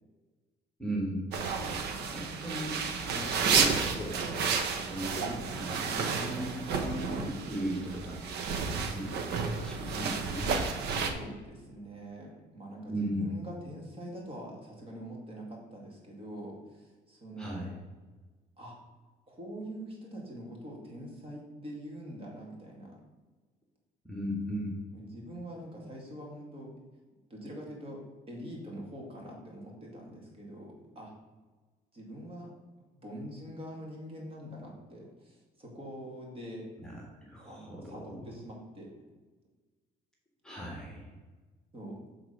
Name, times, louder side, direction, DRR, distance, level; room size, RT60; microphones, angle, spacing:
voice 1, 0.8-4.5 4.9-10.6 12.9-13.3 17.4-17.7 24.0-24.8 36.8-38.1 40.4-41.1, right 1 dB, 5° left, -2 dB, 1.6 m, -37 dB
sound 1, 1.3-11.1, right 5 dB, 75° right, 0.9 m, -31 dB
voice 2, 10.9-17.7 18.6-18.8 19.3-23.0 24.9-26.7 27.3-31.1 31.9-32.5 33.0-36.7 37.4-38.9 41.7-42.0, equal, 35° right, -1 dB, 2.5 m, -44 dB
7.8 x 3.8 x 5.7 m, 1.3 s
cardioid pair, 110°, 17 cm